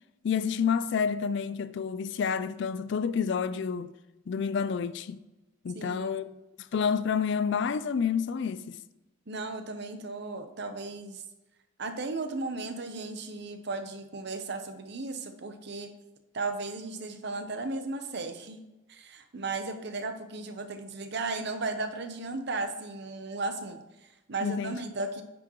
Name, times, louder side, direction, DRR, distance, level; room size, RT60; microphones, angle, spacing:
voice 1, 0.2-3.9 4.3-5.2 5.6-6.3 6.6-8.8 24.4-24.8, left 6 dB, 60° left, 0.4 m, -29 dB
voice 2, 5.7-6.4 9.3-11.2 11.8-15.9 16.3-18.6 18.9-25.2, right 3 dB, 55° right, 0.8 m, -35 dB
9.6 x 6.1 x 3.0 m
head